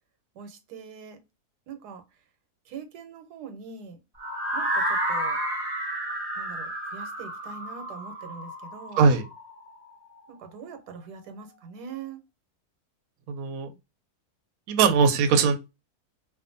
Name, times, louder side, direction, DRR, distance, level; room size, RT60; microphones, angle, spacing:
voice 1, 0.3-1.2 1.7-2.0 2.7-4.0 4.5-5.4 6.4-9.0 10.3-12.2, right 6 dB, 90° right, 1.3 m, -42 dB
sound 1, 4.2-10.1, right 1 dB, 25° right, 0.6 m, -31 dB
voice 2, 13.3-13.7 14.7-15.6, right 5 dB, 70° right, 1.0 m, -20 dB
2.6 x 2.4 x 2.5 m
omnidirectional pair, 1.7 m